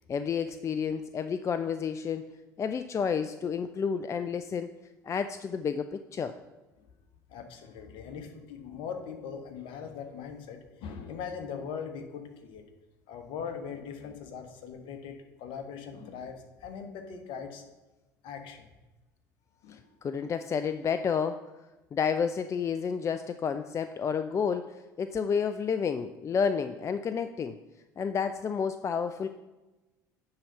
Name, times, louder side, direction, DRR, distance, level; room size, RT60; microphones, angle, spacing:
voice 1, 0.1-2.2 2.6-4.7 5.0-6.3 19.7-21.4 21.9-27.6 28.0-29.3, left 6 dB, 30° left, 10 dB, 0.4 m, -30 dB
voice 2, 7.3-12.7 13.1-17.6 18.2-18.8 19.6-19.9, left 6 dB, 60° left, 6 dB, 1.2 m, -41 dB
9.6 x 3.8 x 5.7 m, 1.1 s
hypercardioid pair, 65°, 10 cm